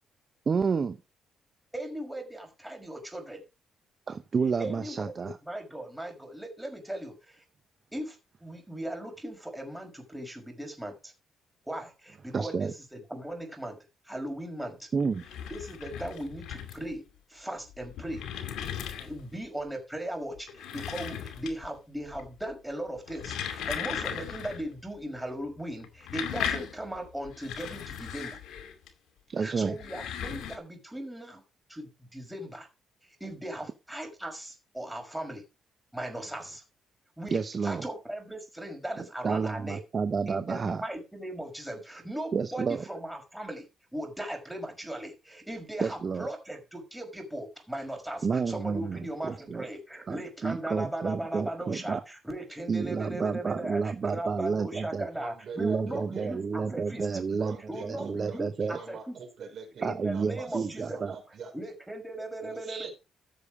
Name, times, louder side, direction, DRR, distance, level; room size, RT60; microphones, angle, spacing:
voice 1, 0.5-1.0 4.1-5.4 12.3-12.7 14.9-15.2 29.3-29.8 37.3-37.9 39.0-40.8 42.3-42.8 45.8-46.3 48.2-49.7 50.1-52.0 52.7-55.1 55.6-58.8 59.8-61.2 62.7-62.9, right 5 dB, 40° right, 11 dB, 0.9 m, -30 dB
voice 2, 1.7-3.4 4.6-7.4 7.9-11.1 11.7-13.8 14.1-14.9 15.5-17.0 17.3-18.5 18.8-28.4 29.4-31.4 31.7-32.7 33.2-35.4 35.9-36.6 37.2-39.8 40.3-43.7 43.9-57.1 57.7-59.2 59.8-61.0 61.5-62.9, right 1 dB, 5° right, 3 dB, 5.5 m, -38 dB
sound 1, 15.0-17.0 17.7-19.4 20.3-21.8 22.1-22.5 23.0-24.7 24.9-25.0 25.8-28.9 29.6-30.6, left 9 dB, 85° left, 2.4 m, -37 dB
voice 3, 55.1-56.4 57.3-61.7 62.4-62.9, right 5 dB, 60° right, 3 dB, 5.6 m, -45 dB
14.5 x 7.1 x 4.9 m, 0.28 s
cardioid pair, 90°, 0 cm